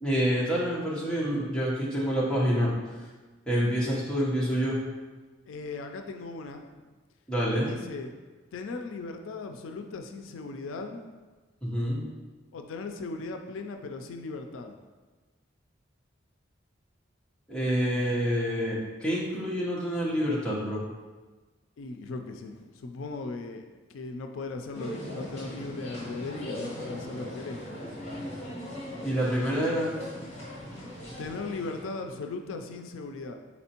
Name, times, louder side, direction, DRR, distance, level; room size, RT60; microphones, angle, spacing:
voice 1, 0.0-2.7 3.5-4.8 7.3-7.7 11.6-12.1 17.5-20.8 29.0-29.9, equal, 5° left, -7 dB, 0.9 m, -27 dB
voice 2, 5.5-6.7 7.6-8.1 8.5-11.0 12.5-14.8 21.8-27.7 31.2-33.4, left 3 dB, 85° left, 5 dB, 0.4 m, -38 dB
sound 1, 24.7-31.9, left 1 dB, 35° left, 1.3 m, -39 dB
4.2 x 4.2 x 2.9 m, 1.3 s
head